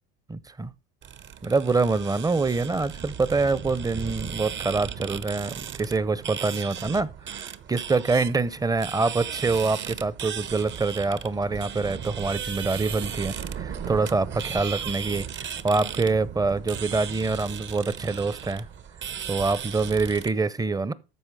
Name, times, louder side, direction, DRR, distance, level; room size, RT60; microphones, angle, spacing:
voice 1, 0.3-0.7 1.4-18.6 19.3-20.9, right 3 dB, 10° right, 0.7 m, -25 dB
sound 1, 1.0-20.3, right 8 dB, 40° right, 1.0 m, -36 dB
13.5 x 4.8 x 4.7 m
hypercardioid pair, 90°, 30 cm